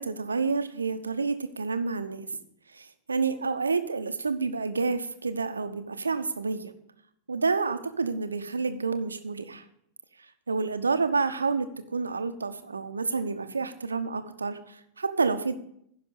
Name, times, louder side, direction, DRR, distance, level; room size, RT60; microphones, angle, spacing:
voice 1, 0.0-2.3 2.7-6.7 7.3-9.6 10.5-15.5, right 4 dB, 75° right, 10 dB, 0.8 m, -29 dB
10.5 x 5.9 x 8.4 m, 0.72 s
figure-of-eight pair, 90°, 0 cm